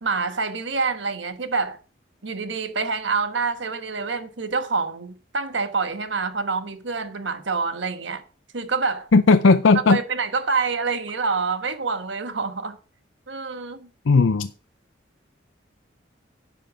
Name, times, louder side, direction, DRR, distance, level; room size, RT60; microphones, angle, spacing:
voice 1, 0.0-1.8 2.2-8.2 8.5-9.1 9.9-12.8 13.3-13.9, right 4 dB, 75° right, 1.3 m, -26 dB
voice 2, 9.1-10.0 14.1-14.5, left 4 dB, 85° left, 0.6 m, -16 dB
11.5 x 7.9 x 5.2 m
head